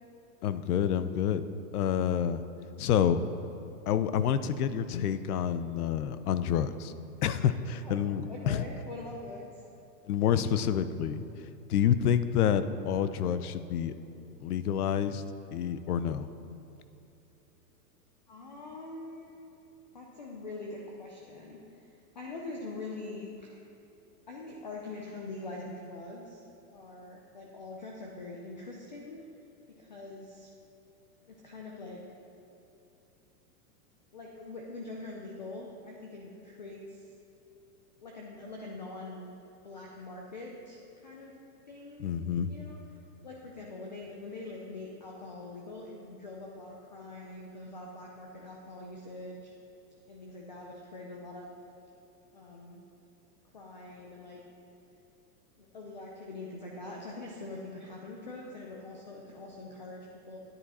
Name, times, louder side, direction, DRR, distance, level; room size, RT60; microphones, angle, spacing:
voice 1, 0.4-1.4 1.7-2.4 2.8-3.2 3.9-6.9 7.2-8.6 10.1-11.2 11.7-13.9 14.4-15.2 15.5-16.3 42.0-42.5, left 9 dB, 70° left, 13 dB, 0.7 m, -28 dB
voice 2, 7.8-9.6 18.3-19.5 19.9-23.6 24.3-26.4 26.7-29.2 29.8-30.5 31.3-32.0 34.1-37.1 38.0-39.3 39.6-41.4 41.7-42.1 42.4-49.5 50.1-51.5 52.3-52.8 53.5-54.4 55.6-60.4, left 2 dB, 30° left, -1 dB, 0.4 m, -44 dB
11.0 x 9.8 x 4.2 m, 2.8 s
supercardioid pair, 180°, 48 cm